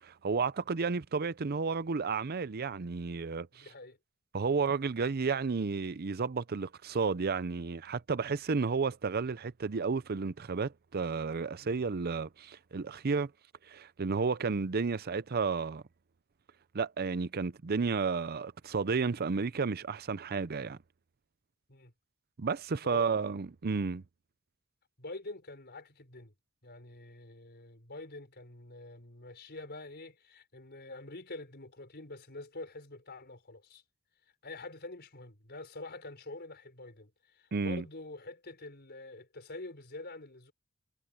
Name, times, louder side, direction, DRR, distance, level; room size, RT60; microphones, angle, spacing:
voice 1, 0.0-3.6 4.3-13.3 13.7-15.8 16.7-20.8 22.4-24.0 37.5-37.8, right 4 dB, 45° right, 0.6 m, -32 dB
voice 2, 3.5-4.0 11.6-11.8 14.2-14.3 21.7-21.9 22.8-23.1 25.0-26.3 26.6-33.8 34.4-40.5, left 2 dB, 50° left, 4.7 m, -46 dB
head